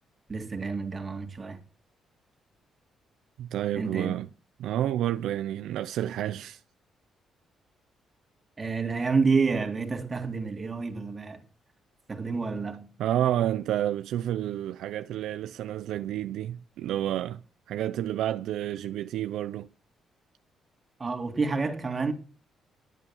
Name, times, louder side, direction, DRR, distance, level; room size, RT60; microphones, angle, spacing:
voice 1, 0.3-1.6 3.7-4.2 8.6-11.4 12.1-12.9 21.0-22.1, right 4 dB, 30° right, 2.2 m, -29 dB
voice 2, 3.4-4.3 4.6-6.6 13.0-17.4 17.7-19.7, right 12 dB, 80° right, 0.5 m, -30 dB
11.0 x 9.1 x 7.1 m
cardioid pair, 90°, 0 cm